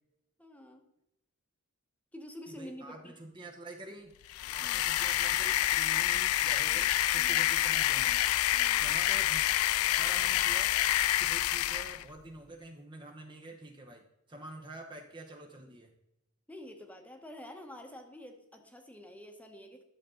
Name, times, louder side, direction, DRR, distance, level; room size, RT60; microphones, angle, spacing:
voice 1, 0.4-0.9 2.1-3.2 4.6-5.0 6.7-7.6 8.5-8.9 16.5-19.8, left 1 dB, 5° left, 4 dB, 1.1 m, -49 dB
voice 2, 2.5-4.1 4.5-8.3 8.8-9.4 10.0-10.7 11.2-15.9, right 2 dB, 20° right, 2 dB, 0.9 m, -47 dB
sound 1, 4.3-12.0, left 14 dB, 80° left, 0.3 m, -28 dB
11.5 x 6.8 x 3.8 m, 0.87 s
head